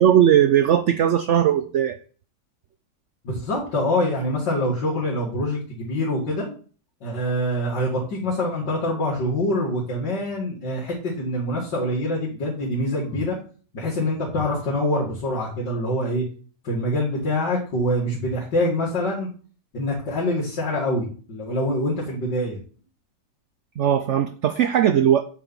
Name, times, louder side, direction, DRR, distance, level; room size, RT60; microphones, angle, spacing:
voice 1, 0.0-2.0 23.8-25.2, right 10 dB, 80° right, 9 dB, 0.6 m, -18 dB
voice 2, 3.2-6.5 7.0-13.4 13.7-16.2 16.6-19.3 19.7-22.6, left 1 dB, 85° left, -7 dB, 2.9 m, -25 dB
8.5 x 4.6 x 5.4 m, 0.41 s
omnidirectional pair, 1.9 m